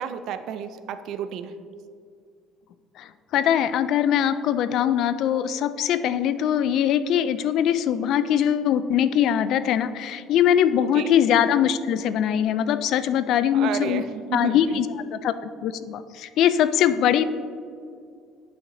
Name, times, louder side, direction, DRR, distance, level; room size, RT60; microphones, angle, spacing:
voice 1, 0.0-1.5 6.1-6.2 10.8-11.1 13.5-14.8, right 7 dB, 60° right, 10 dB, 0.4 m, -32 dB
voice 2, 3.0-14.0 14.3-14.9 15.1-17.2, left 9 dB, 55° left, 13 dB, 0.3 m, -22 dB
10.0 x 5.8 x 2.7 m, 2.3 s
cardioid pair, 145°, 0 cm